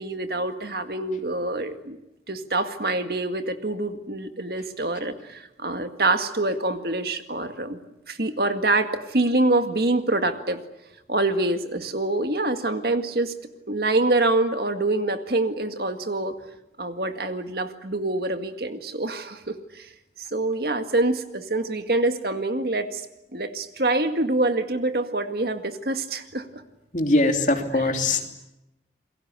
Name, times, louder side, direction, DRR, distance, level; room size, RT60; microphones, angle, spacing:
voice 1, 0.0-2.0 2.3-7.8 8.1-10.6 11.1-13.3 13.7-16.4 16.8-19.9 20.3-23.0 23.3-26.6 27.7-27.9, right 2 dB, 60° right, 8 dB, 2.0 m, -25 dB
voice 2, 26.9-28.3, left 2 dB, 45° left, 4 dB, 3.1 m, -21 dB
28.5 x 22.0 x 8.3 m, 0.90 s
head